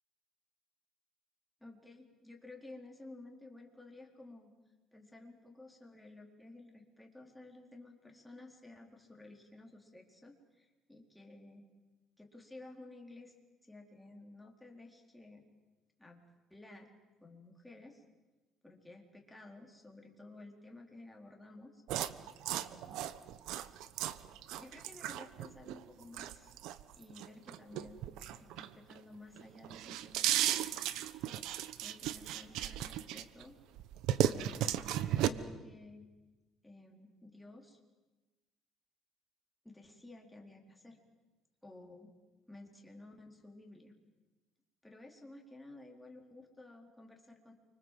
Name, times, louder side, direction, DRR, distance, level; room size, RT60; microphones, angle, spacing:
voice 1, 1.6-4.5 4.9-11.6 12.2-13.3 13.6-15.4 16.0-16.2 16.5-16.9 17.2-18.0 18.6-21.8 22.5-23.0 24.0-24.1 24.6-26.5 26.9-28.1 28.4-30.8 31.8-33.6 34.2-36.1 36.6-37.8 39.6-41.0 41.6-42.1 42.5-43.9 44.8-47.5, left 2 dB, 5° left, 1 dB, 4.5 m, -54 dB
sound 1, 21.9-29.0 29.4-33.4 33.8-35.3, right 12 dB, 75° right, 1.2 m, -35 dB
29.0 x 25.5 x 7.8 m, 1.2 s
cardioid pair, 125°, 0 cm